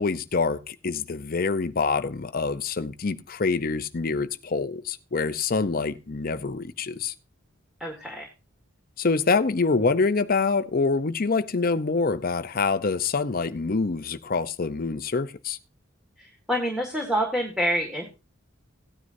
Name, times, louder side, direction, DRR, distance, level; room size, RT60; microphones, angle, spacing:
voice 1, 0.0-7.1 9.0-15.6, left 4 dB, 45° left, 0.6 m, -26 dB
voice 2, 7.8-8.3 16.2-18.1, equal, 5° right, 1.8 m, -27 dB
17.0 x 9.6 x 2.6 m
head